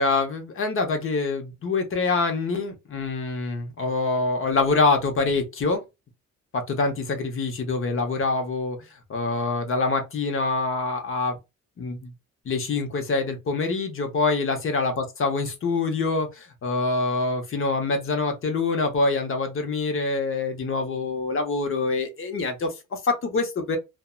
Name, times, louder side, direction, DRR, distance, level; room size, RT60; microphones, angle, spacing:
voice 1, 0.0-5.8 6.5-8.8 9.1-11.4 11.8-12.1 12.5-23.8, left 3 dB, 45° left, 0.8 m, -25 dB
2.5 x 2.1 x 2.3 m
cardioid pair, 90°, 30 cm